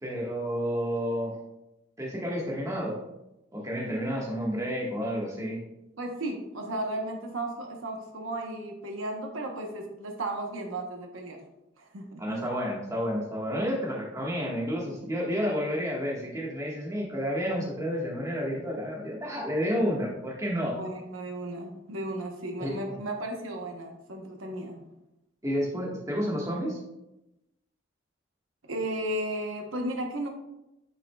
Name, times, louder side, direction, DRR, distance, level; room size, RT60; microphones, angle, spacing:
voice 1, 0.0-1.4 2.0-3.0 3.5-5.6 12.2-20.8 22.6-23.0 25.4-26.8, equal, 15° right, -3 dB, 1.4 m, -30 dB
voice 2, 6.0-11.4 11.8-12.1 12.3-12.5 20.8-24.8 28.6-30.3, right 1 dB, 90° right, 3 dB, 1.0 m, -34 dB
8.6 x 6.2 x 2.3 m, 0.92 s
head